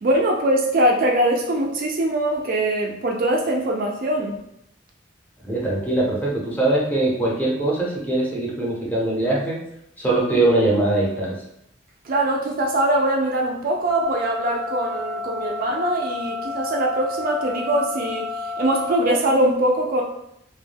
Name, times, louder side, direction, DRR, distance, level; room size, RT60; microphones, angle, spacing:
voice 1, 0.0-4.3 12.1-18.3 18.6-20.0, right 1 dB, 50° right, 0 dB, 0.3 m, -22 dB
voice 2, 5.4-9.6 10.0-11.3, right 2 dB, 10° left, -5 dB, 0.6 m, -21 dB
sound 1, 13.9-18.9, left 3 dB, 75° left, 0.4 m, -30 dB
2.2 x 2.1 x 3.3 m, 0.78 s
head